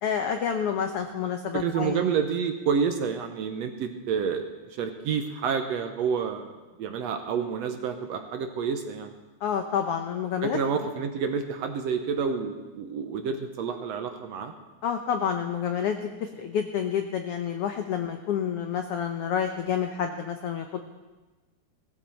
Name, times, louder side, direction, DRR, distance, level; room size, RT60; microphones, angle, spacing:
voice 1, 0.0-2.0 9.4-10.6 14.8-20.8, left 8 dB, 85° left, 6 dB, 1.3 m, -29 dB
voice 2, 1.5-6.5 6.8-9.1 10.4-14.5, right 6 dB, 70° right, 6 dB, 1.7 m, -29 dB
18.0 x 14.0 x 4.4 m, 1.2 s
omnidirectional pair, 3.7 m